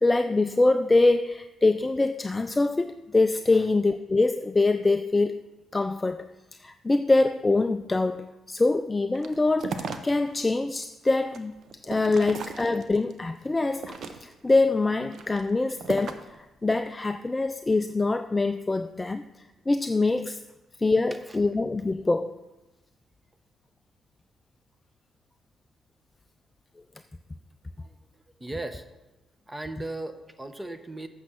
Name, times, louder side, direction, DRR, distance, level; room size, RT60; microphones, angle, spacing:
voice 1, 0.0-5.4 5.7-6.3 6.6-11.5 11.8-14.0 14.2-20.4 20.8-22.3, left 3 dB, 20° left, 9 dB, 0.3 m, -24 dB
sound 1, 9.1-10.4 10.8-13.1 13.6-14.5 15.0-16.4, right 4 dB, 60° right, 0.8 m, -37 dB
voice 2, 27.8-28.9 29.5-31.1, right 2 dB, 15° right, 9 dB, 0.9 m, -38 dB
8.4 x 6.5 x 6.1 m, 1.1 s
cardioid pair, 90°, 0 cm